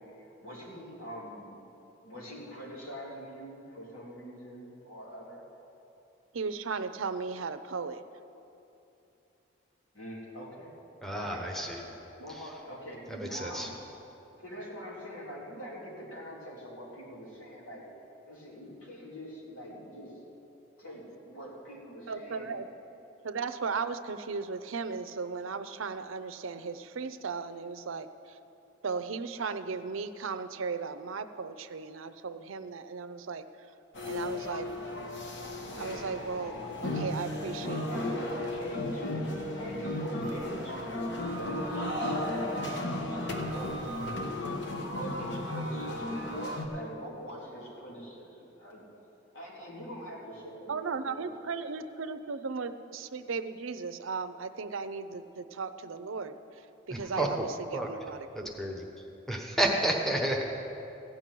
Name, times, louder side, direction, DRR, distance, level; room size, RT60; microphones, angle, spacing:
voice 1, 0.0-1.6 2.0-5.4 9.9-10.8 11.1-11.7 12.0-13.7 14.4-17.9 18.2-20.2 20.8-22.6 36.4-42.5 43.3-43.7 44.8-48.9 49.3-51.3, equal, 85° left, -5 dB, 3.4 m, -44 dB
voice 2, 6.3-8.0 22.1-22.7 23.2-28.4 28.8-33.5 34.0-34.7 35.8-37.8 38.1-38.3 50.7-56.3 56.9-58.5, right 5 dB, 85° right, 11 dB, 0.6 m, -36 dB
voice 3, 11.0-11.8 12.3-12.5 13.1-13.7 56.9-57.5 57.7-57.9 58.3-58.9 59.3-60.4, right 1 dB, ahead, 0 dB, 1.0 m, -31 dB
sound 1, 33.9-46.7, left 1 dB, 60° left, 1.2 m, -34 dB
15.5 x 6.0 x 9.2 m, 2.8 s
head